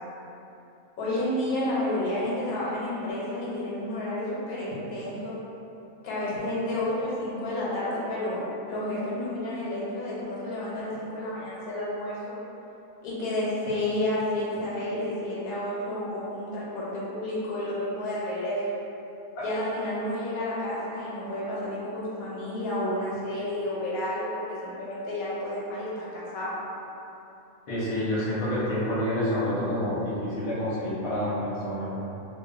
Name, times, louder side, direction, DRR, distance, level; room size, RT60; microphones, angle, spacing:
voice 1, 1.0-5.3 6.0-12.4 13.0-18.6 19.4-26.5, left 1 dB, 85° left, -7 dB, 1.2 m, -31 dB
voice 2, 27.7-32.0, left 1 dB, 45° left, -10 dB, 0.8 m, -28 dB
2.5 x 2.3 x 2.4 m, 2.8 s
omnidirectional pair, 1.5 m